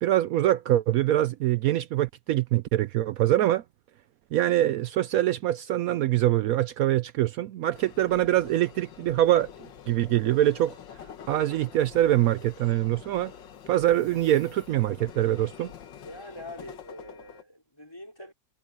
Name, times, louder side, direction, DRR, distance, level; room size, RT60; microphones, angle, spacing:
voice 1, 0.0-3.6 4.3-9.5 9.9-10.7 11.3-13.3 13.7-15.7, right 13 dB, 85° right, 0.7 m, -24 dB
sound 1, 7.7-17.4, left 8 dB, 70° left, 1.9 m, -46 dB
voice 2, 16.0-18.3, left 1 dB, 10° left, 4.7 m, -44 dB
omnidirectional pair, 2.1 m